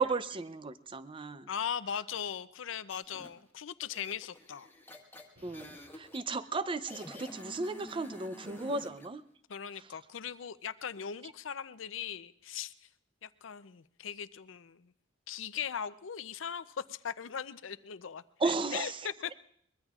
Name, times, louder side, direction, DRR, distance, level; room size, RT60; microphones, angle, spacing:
voice 1, 0.0-1.5 5.4-9.2 18.4-19.0, right 3 dB, 25° right, 14 dB, 0.5 m, -34 dB
voice 2, 1.5-4.7 9.5-12.7 13.2-14.9 15.3-19.3, left 8 dB, 90° left, 14 dB, 0.6 m, -39 dB
sound 1, 2.9-3.3 3.8-6.2 6.9-9.1, left 1 dB, 10° left, 1.6 m, -49 dB
sound 2, 5.4-6.4, equal, 70° right, 7.3 m, -62 dB
23.0 x 22.0 x 2.4 m, 0.65 s
head